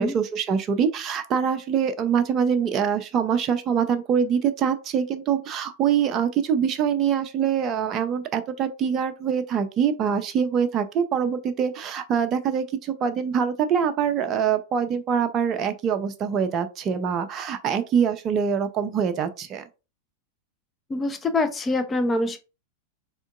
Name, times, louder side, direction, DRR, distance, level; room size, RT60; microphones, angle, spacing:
voice 1, 0.0-19.6, right 7 dB, 30° right, 0.5 m, -24 dB
voice 2, 20.9-22.4, left 2 dB, 15° left, 0.6 m, -24 dB
3.6 x 3.5 x 2.3 m
figure-of-eight pair, 90°, 0 cm